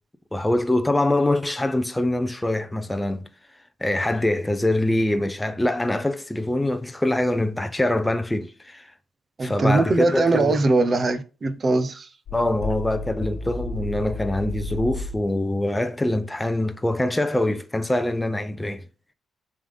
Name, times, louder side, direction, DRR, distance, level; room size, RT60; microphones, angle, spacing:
voice 1, 0.3-3.3 3.8-8.9 9.4-10.6 12.3-18.8, left 1 dB, 5° left, 0.5 m, -24 dB
voice 2, 9.4-12.1, right 2 dB, 30° right, 0.8 m, -21 dB
sound 1, 12.3-15.2, left 3 dB, 50° left, 1.2 m, -31 dB
7.2 x 3.7 x 5.2 m
wide cardioid pair, 165°, 0 cm